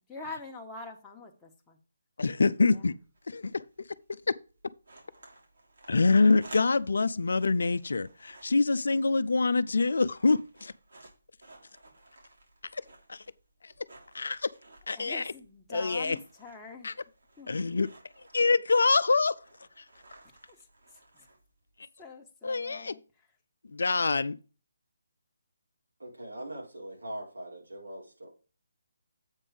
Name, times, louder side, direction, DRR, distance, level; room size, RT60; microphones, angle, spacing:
voice 1, 0.0-1.8 14.9-16.9 17.4-17.5 22.0-23.0, left 3 dB, 5° left, 1.4 m, -44 dB
voice 2, 2.2-2.9 3.3-3.6 4.3-4.4 5.9-10.7 12.7-12.8 13.1-13.2 13.6-13.7 14.1-14.5 14.9-15.3 15.7-16.2 16.8-16.9 17.5-17.9 18.3-19.4 22.4-23.0 23.7-24.4, left 3 dB, 65° left, 0.6 m, -25 dB
sound 1, 2.9-21.8, right 2 dB, 65° right, 3.3 m, -56 dB
voice 3, 26.0-28.3, right 1 dB, 85° right, 4.4 m, -41 dB
8.2 x 5.3 x 4.9 m
figure-of-eight pair, 145°, 0 cm